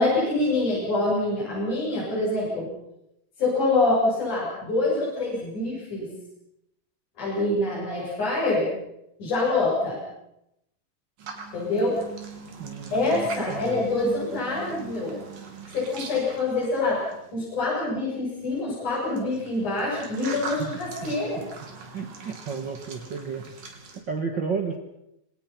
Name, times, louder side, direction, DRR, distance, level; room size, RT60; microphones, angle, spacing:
voice 1, 0.0-2.7 3.4-6.1 7.2-8.7 9.2-10.0 11.5-12.0 12.9-15.2 15.7-17.0 17.3-21.4, left 2 dB, 60° left, -6 dB, 9.2 m, -25 dB
sound 1, 11.2-17.4 18.5-24.0, right 5 dB, 70° right, 4.8 m, -41 dB
voice 2, 12.6-13.8 20.6-21.1 21.9-24.8, right 5 dB, 45° right, 5 dB, 1.6 m, -33 dB
27.5 x 24.5 x 6.0 m, 0.84 s
omnidirectional pair, 4.1 m